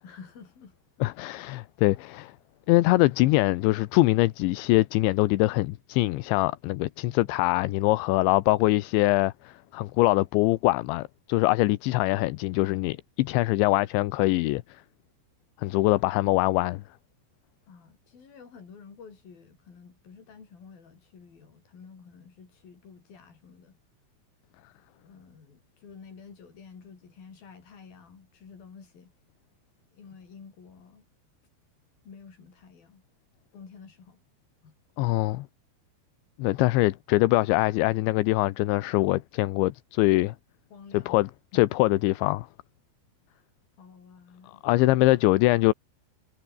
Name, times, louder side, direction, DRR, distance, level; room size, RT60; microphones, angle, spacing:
voice 1, 0.0-0.8 17.7-23.8 25.0-29.1 29.9-31.0 32.0-33.0 33.5-34.2 34.6-34.8 40.7-41.2 41.5-41.6 43.3-43.4 43.8-44.6, left 6 dB, 50° left, 6.5 m, -50 dB
voice 2, 1.0-2.3 2.7-14.8 15.6-16.8 35.0-35.5 36.4-40.4 40.9-41.3 41.5-42.5 44.6-45.7, left 19 dB, 85° left, 3.2 m, -23 dB
omnidirectional pair, 5.3 m